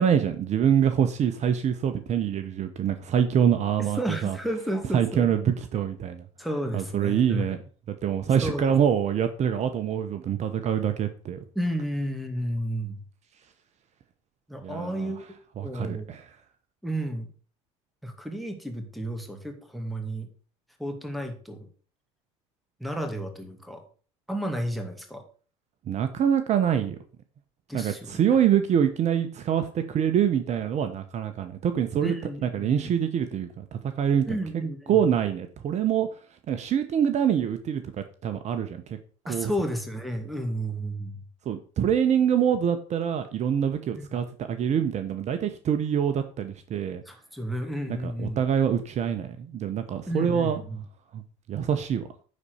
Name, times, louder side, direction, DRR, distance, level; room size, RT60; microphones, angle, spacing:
voice 1, 0.0-4.4 4.9-6.2 6.7-7.6 7.9-11.4 14.6-15.1 15.6-16.2 25.9-27.0 27.7-32.2 32.5-34.4 34.9-36.1 36.5-37.8 38.2-39.0 39.3-39.5 41.5-47.0 47.9-50.6 51.1-51.2 51.5-52.0, right 8 dB, 45° right, 8 dB, 1.0 m, -25 dB
voice 2, 3.8-5.3 6.4-7.5 8.4-8.7 11.5-13.0 14.5-15.2 15.6-16.1 16.8-17.3 18.0-20.3 20.8-21.7 22.8-23.8 24.3-25.3 27.7-28.2 32.0-32.9 34.3-35.0 39.3-41.2 44.0-44.1 47.1-48.4 50.1-50.8, right 1 dB, ahead, 4 dB, 2.3 m, -32 dB
9.7 x 4.3 x 6.5 m, 0.41 s
hypercardioid pair, 80°, 16 cm